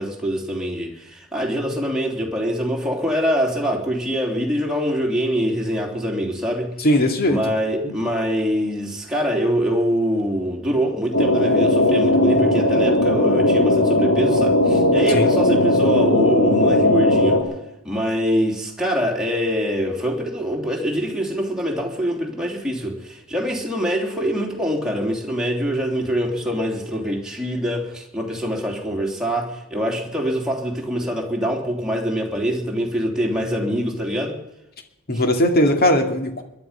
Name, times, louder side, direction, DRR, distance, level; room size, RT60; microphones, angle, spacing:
voice 1, 0.0-6.7 7.2-17.4 17.8-34.4 35.1-35.2, equal, 5° right, 3.2 m, -24 dB
voice 2, 6.8-7.4 7.8-7.9 15.1-15.3 35.1-36.4, left 1 dB, 45° left, 2.3 m, -19 dB
sound 1, 11.1-17.4, left 1 dB, 65° left, 3.6 m, -17 dB
22.0 x 11.0 x 5.7 m
head